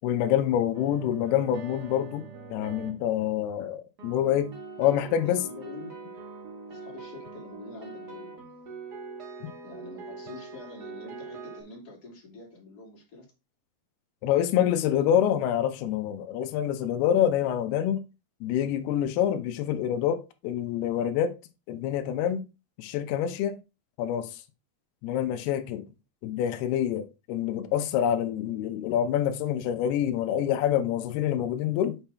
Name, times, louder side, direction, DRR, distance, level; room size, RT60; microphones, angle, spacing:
voice 1, 0.0-2.3 2.5-4.5 4.8-5.4 9.4-9.5 14.2-18.0 18.4-21.3 21.7-22.4 22.8-23.6 24.0-24.4 25.0-25.9 26.2-32.0, left 10 dB, 85° left, 2.8 m, -26 dB
sound 1, 0.7-3.1 4.0-11.6, right 4 dB, 55° right, 1.1 m, -43 dB
voice 2, 4.8-5.9 6.7-8.9 9.6-13.3, left 3 dB, 30° left, 2.4 m, -46 dB
7.9 x 5.7 x 3.4 m
omnidirectional pair, 4.5 m